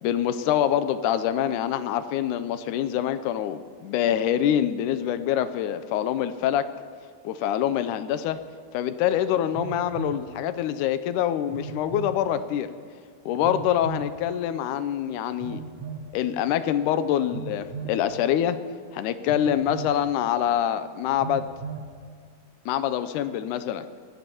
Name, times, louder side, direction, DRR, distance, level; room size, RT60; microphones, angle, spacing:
voice 1, 0.0-6.7 7.2-8.4 8.7-12.7 13.3-15.6 16.1-18.6 18.9-21.4 22.7-23.9, left 10 dB, 85° left, 11 dB, 2.1 m, -25 dB
Telephone, 8.2-8.3 9.5-10.3 11.5-12.2 13.4-14.1 15.4-16.1 17.3-18.0 19.3-20.0 21.2-21.9, right 6 dB, 45° right, 2.0 m, -36 dB
23.5 x 17.5 x 3.0 m, 2.1 s
omnidirectional pair, 3.6 m